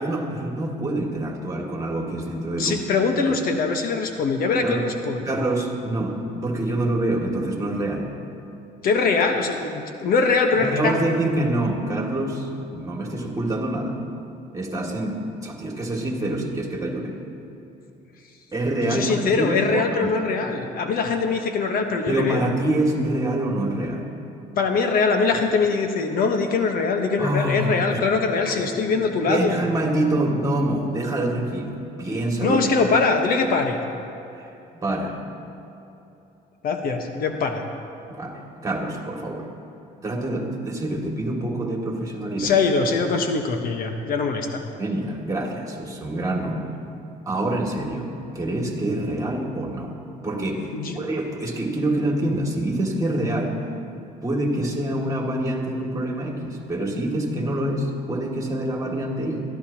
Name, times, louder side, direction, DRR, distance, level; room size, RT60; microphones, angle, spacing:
voice 1, 0.0-2.8 3.3-3.4 4.6-4.8 5.2-8.1 10.5-14.0 14.5-15.2 15.4-17.1 18.5-20.1 22.1-24.0 27.2-28.2 29.0-32.6 34.3-35.1 38.1-39.5 40.0-42.5 44.8-46.9 47.3-49.9 50.2-53.6 54.2-59.4, right 1 dB, 20° right, 0 dB, 2.3 m, -26 dB
voice 2, 2.6-5.3 8.8-11.0 18.8-22.5 24.6-29.6 32.4-33.8 36.6-37.6 42.4-44.6 50.7-51.0, left 4 dB, 60° left, 4 dB, 1.2 m, -22 dB
22.5 x 14.0 x 2.9 m, 2.9 s
cardioid pair, 110°, 17 cm